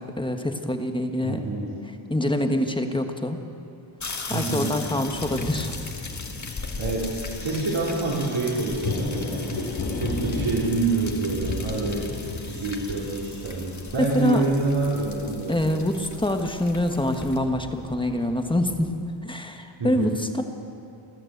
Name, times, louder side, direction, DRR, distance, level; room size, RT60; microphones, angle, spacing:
voice 1, 0.2-1.4 2.1-3.4 4.3-5.7 14.0-14.4 15.5-18.9 19.2-20.4, left 1 dB, 10° left, 5 dB, 1.4 m, -25 dB
voice 2, 1.2-1.7 4.3-4.8 6.8-9.7 9.9-12.1 12.5-15.6 19.8-20.2, right 3 dB, 65° right, -5 dB, 4.3 m, -27 dB
sound 1, 4.0-17.4, left 4 dB, 35° left, 1.9 m, -38 dB
sound 2, 4.2-18.9, left 3 dB, 85° left, 3.7 m, -36 dB
29.5 x 12.5 x 8.1 m, 2.9 s
wide cardioid pair, 160°, 50 cm